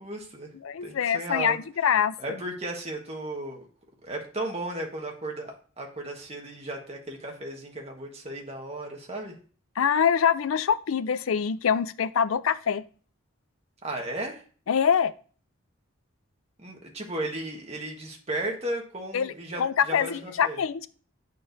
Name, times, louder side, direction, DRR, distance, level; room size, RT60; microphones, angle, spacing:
voice 1, 0.0-0.5 0.8-1.6 2.2-3.7 4.0-9.3 13.8-14.4 16.6-20.6, right 1 dB, 30° right, 1 dB, 1.4 m, -35 dB
voice 2, 0.6-2.4 9.8-12.8 14.7-15.1 19.1-19.3 19.6-20.9, left 7 dB, 75° left, 13 dB, 0.4 m, -24 dB
8.8 x 6.8 x 2.6 m, 0.40 s
head